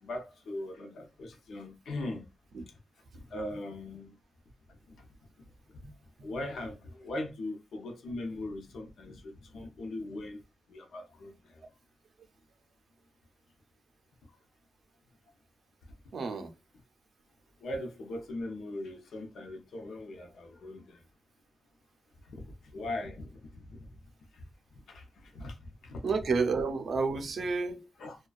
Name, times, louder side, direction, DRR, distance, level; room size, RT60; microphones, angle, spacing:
voice 1, 0.0-2.3 3.3-4.1 4.9-5.0 5.7-5.8 6.2-10.4 10.7-11.6 17.6-21.0 22.3-23.9 24.3-24.4 24.9-26.2 28.0-28.2, left 1 dB, 85° left, 0.7 m, -40 dB
voice 2, 16.1-16.5 26.0-27.9, right 4 dB, 55° right, 0.5 m, -30 dB
2.3 x 2.2 x 2.3 m
wide cardioid pair, 170°, 0 cm